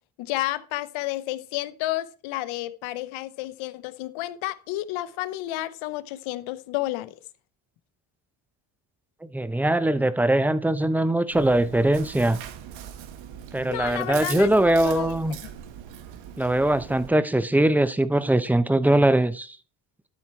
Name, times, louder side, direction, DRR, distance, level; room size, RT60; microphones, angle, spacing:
voice 1, 0.2-7.1 13.7-15.1, left 16 dB, 85° left, 0.8 m, -31 dB
voice 2, 9.2-12.4 13.5-15.4 16.4-19.6, right 1 dB, 5° right, 0.5 m, -21 dB
Chewing mastication, 11.3-17.1, right 9 dB, 75° right, 1.2 m, -40 dB
12.5 x 4.4 x 4.4 m
cardioid pair, 110°, 46 cm